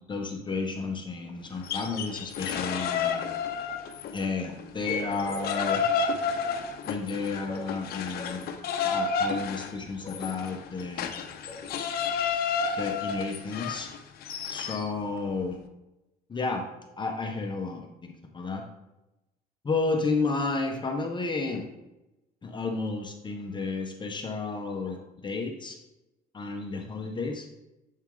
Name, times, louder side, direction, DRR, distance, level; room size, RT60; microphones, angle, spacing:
voice 1, 0.0-3.3 4.1-5.9 6.9-8.4 8.8-11.1 11.5-11.6 12.7-13.9 14.5-15.6 16.3-16.6 17.0-18.6 19.6-21.7 22.4-25.8 26.3-27.5, left 3 dB, 25° left, 3 dB, 0.9 m, -32 dB
sound 1, 1.5-4.3 4.6-14.9, left 6 dB, 65° left, 0.7 m, -31 dB
7.4 x 4.4 x 3.8 m, 0.95 s
cardioid pair, 110°, 17 cm